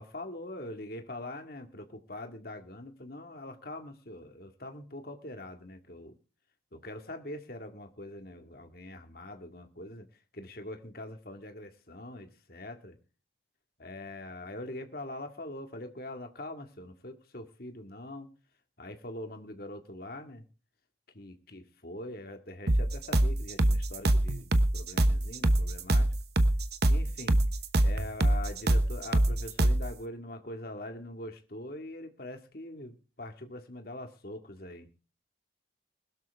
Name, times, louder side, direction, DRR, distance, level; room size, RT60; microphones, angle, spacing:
voice 1, 0.0-6.2 6.7-10.1 10.3-13.0 13.8-18.3 18.8-20.5 21.2-26.1 26.9-27.4 27.8-34.9, left 1 dB, 50° left, 6 dB, 2.1 m, -43 dB
sound 1, 22.7-29.9, right 1 dB, 55° right, 1.1 m, -24 dB
21.0 x 12.5 x 3.6 m, 0.34 s
head